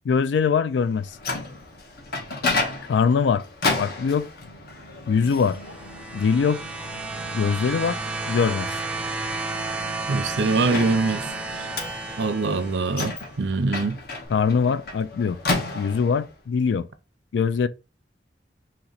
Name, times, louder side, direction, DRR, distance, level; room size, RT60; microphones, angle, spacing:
voice 1, 0.1-1.1 2.9-3.4 3.8-4.3 5.1-5.6 6.1-6.6 7.3-8.0 8.3-8.7 14.3-15.4 15.7-16.9 17.3-17.7, left 6 dB, 85° left, 0.3 m, -22 dB
Microwave oven, 0.9-16.3, left 3 dB, 60° left, 0.9 m, -33 dB
sound 1, 5.4-13.2 14.2-14.3, right 3 dB, 5° right, 0.4 m, -32 dB
voice 2, 10.1-11.2 11.5-11.7 12.2-14.0, right 3 dB, 85° right, 0.6 m, -23 dB
2.9 x 2.9 x 3.9 m
head